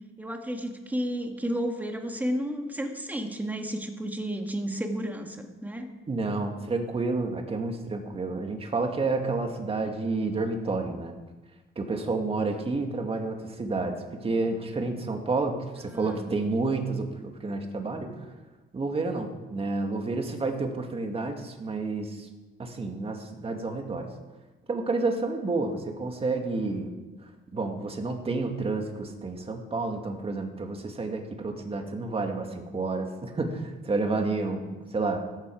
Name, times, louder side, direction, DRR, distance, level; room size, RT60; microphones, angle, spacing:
voice 1, 0.2-5.9 15.9-16.3, equal, 10° right, 4 dB, 1.8 m, -32 dB
voice 2, 6.1-11.2 11.8-18.2 18.7-22.3 22.6-24.1 24.7-26.9 27.2-35.2, right 3 dB, 25° right, 4 dB, 2.3 m, -30 dB
16.5 x 13.5 x 4.9 m, 1.2 s
cardioid pair, 115°, 21 cm